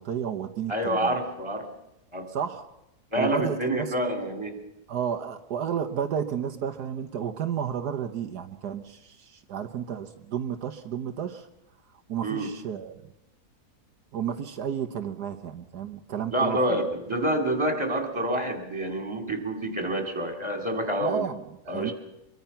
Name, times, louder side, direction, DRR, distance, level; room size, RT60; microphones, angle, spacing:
voice 1, 0.0-1.2 2.3-2.6 3.2-3.9 4.9-11.5 12.1-13.0 14.1-16.8 21.0-21.9, right 8 dB, 80° right, 7 dB, 1.6 m, -32 dB
voice 2, 0.7-1.7 2.1-2.3 3.1-4.6 12.2-12.5 16.3-21.2 21.7-21.9, right 1 dB, 15° right, 5 dB, 3.3 m, -27 dB
25.5 x 23.0 x 5.8 m, 0.87 s
omnidirectional pair, 1.7 m